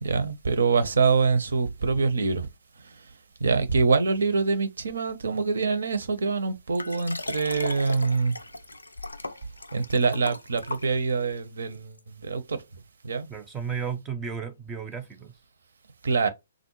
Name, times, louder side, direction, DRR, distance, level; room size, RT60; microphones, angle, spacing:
voice 1, 0.0-2.5 2.8-3.0 3.4-8.4 9.7-12.6 13.0-13.3 16.0-16.3, right 4 dB, 65° right, 0.5 m, -25 dB
Liquid, 6.8-11.3 12.0-12.1, left 2 dB, 85° left, 0.3 m, -37 dB
voice 2, 13.3-15.3, right 6 dB, 15° right, 0.4 m, -33 dB
3.6 x 2.0 x 3.0 m
figure-of-eight pair, 125°, 0 cm